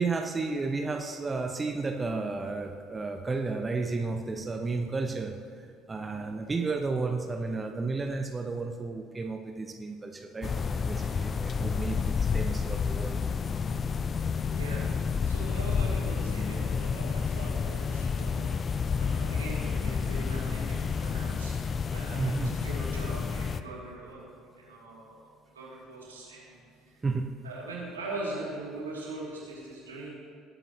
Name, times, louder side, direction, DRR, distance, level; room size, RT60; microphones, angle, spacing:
voice 1, 0.0-5.4 5.9-13.2 22.1-22.5 27.0-27.4, right 3 dB, 20° right, 4 dB, 0.8 m, -32 dB
sound 1, 10.4-23.6, left 5 dB, 35° left, 0.5 m, -30 dB
voice 2, 14.5-24.3 24.6-26.6 27.4-30.1, right 2 dB, 80° right, -5 dB, 3.1 m, -41 dB
20.0 x 9.0 x 3.2 m, 2.4 s
figure-of-eight pair, 55°, 0 cm